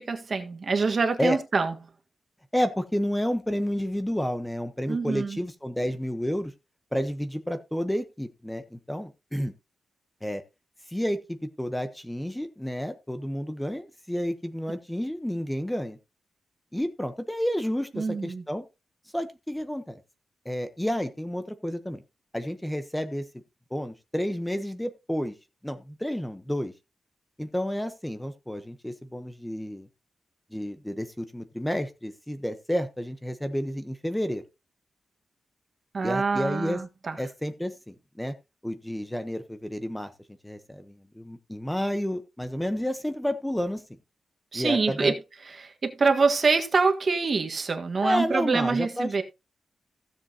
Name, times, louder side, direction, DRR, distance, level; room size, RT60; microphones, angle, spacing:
voice 1, 0.0-1.7 4.9-5.4 17.9-18.4 35.9-37.2 44.5-45.2 45.4-49.2, right 4 dB, 45° right, 1.6 m, -25 dB
voice 2, 2.5-6.5 6.9-9.5 10.2-10.4 10.9-16.0 16.7-18.6 19.1-20.0 20.4-22.0 22.3-23.2 23.7-25.3 25.6-26.7 27.4-29.9 30.5-34.4 36.0-36.8 37.2-38.3 38.6-40.1 40.4-43.8 44.5-45.1 48.0-49.1, equal, 5° left, 1.0 m, -30 dB
15.5 x 7.5 x 2.9 m
wide cardioid pair, 125°, 0 cm